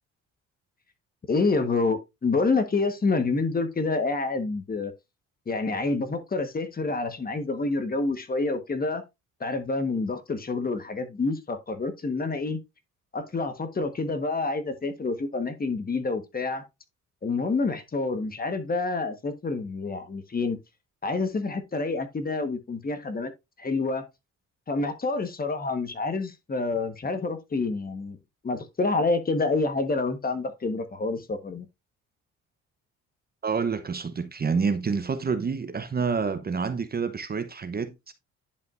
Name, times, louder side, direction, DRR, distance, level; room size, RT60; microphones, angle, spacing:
voice 1, 1.3-4.9 5.5-9.0 9.4-12.6 13.1-16.6 17.2-20.6 21.0-23.3 23.6-24.1 24.7-28.2 28.4-31.7, left 3 dB, 30° left, 1.3 m, -28 dB
voice 2, 33.4-38.1, right 5 dB, 30° right, 0.8 m, -28 dB
10.5 x 5.1 x 2.5 m
cardioid pair, 90°, 30 cm